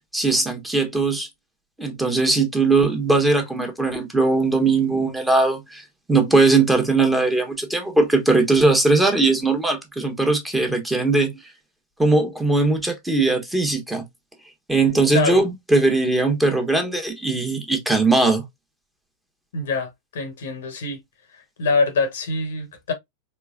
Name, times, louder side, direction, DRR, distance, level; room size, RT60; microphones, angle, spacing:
voice 1, 0.1-1.3 1.8-5.8 6.1-11.4 12.0-14.0 14.7-18.4, right 3 dB, 5° right, 1.3 m, -19 dB
voice 2, 19.5-21.0 21.3-22.9, left 4 dB, 60° left, 1.0 m, -24 dB
4.5 x 3.2 x 2.4 m
figure-of-eight pair, 90°, 0 cm